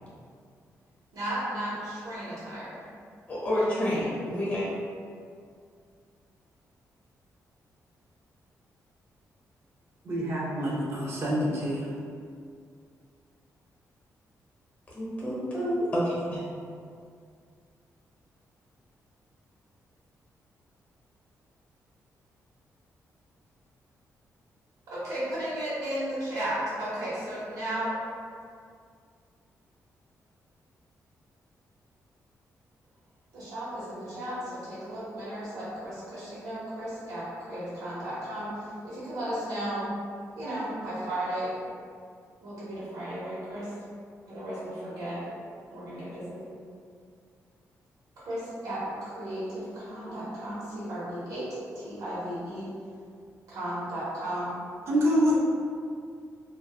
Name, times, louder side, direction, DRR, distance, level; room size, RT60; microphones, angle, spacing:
voice 1, 1.1-2.8 24.9-27.9 33.3-39.9 40.4-41.5 42.4-43.7 44.3-45.2 45.7-46.4 48.2-51.5 51.7-52.7 53.5-54.6 55.3-55.4, right 1 dB, 80° right, -11 dB, 1.0 m, -34 dB
voice 2, 3.3-4.7 14.9-16.4, equal, 25° left, -7 dB, 0.8 m, -28 dB
voice 3, 10.1-11.8 54.9-55.3, equal, 45° right, -6 dB, 0.4 m, -26 dB
2.6 x 2.3 x 2.3 m, 2.2 s
wide cardioid pair, 160°, 6 cm